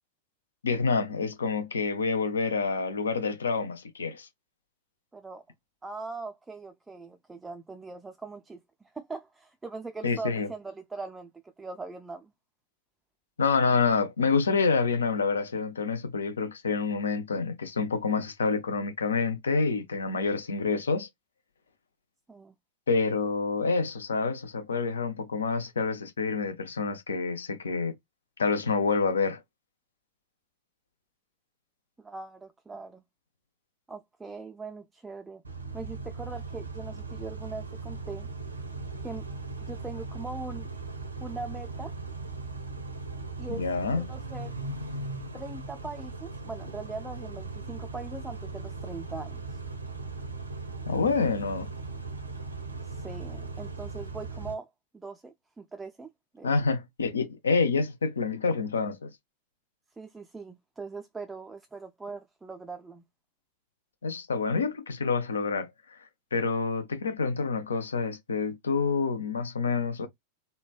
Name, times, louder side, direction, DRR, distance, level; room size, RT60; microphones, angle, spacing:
voice 1, 0.6-4.3 10.0-10.5 13.4-21.1 22.9-27.9 28.4-29.4 43.5-44.1 50.9-51.7 56.4-59.1 64.0-65.7 66.3-70.1, left 4 dB, 70° left, 0.5 m, -27 dB
voice 2, 5.1-5.4 5.8-11.3 11.6-12.3 22.3-22.5 32.0-33.0 33.9-35.4 35.7-38.3 39.0-39.3 39.7-40.7 41.2-41.9 43.4-43.6 44.0-44.6 45.3-49.6 52.8-54.7 54.9-56.5 60.0-63.0, right 3 dB, 10° right, 0.3 m, -41 dB
Car / Idling / Accelerating revving vroom, 35.4-54.5, right 3 dB, 80° right, 0.6 m, -38 dB
3.1 x 2.1 x 2.3 m
figure-of-eight pair, 90°, 0 cm